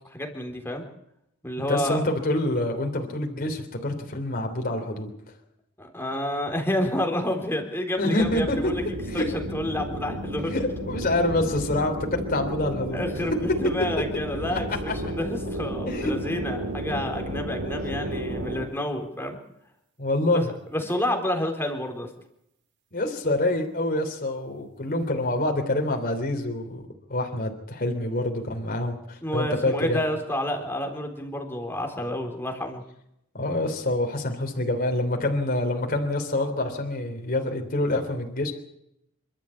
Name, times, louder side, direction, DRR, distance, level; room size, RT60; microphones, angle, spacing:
voice 1, 0.1-0.8 1.4-2.0 5.8-8.8 9.1-10.5 12.9-19.4 20.3-22.1 29.2-32.8, left 1 dB, 10° left, 3 dB, 3.9 m, -29 dB
voice 2, 1.7-5.1 8.0-8.6 9.1-9.3 10.5-13.0 14.5-14.6 15.9-16.1 20.0-20.5 22.9-26.8 27.1-30.0 33.3-38.5, left 1 dB, 45° left, 4 dB, 3.3 m, -26 dB
sound 1, 8.2-18.7, right 1 dB, 55° right, 3.8 m, -32 dB
27.5 x 13.0 x 8.7 m, 0.79 s
head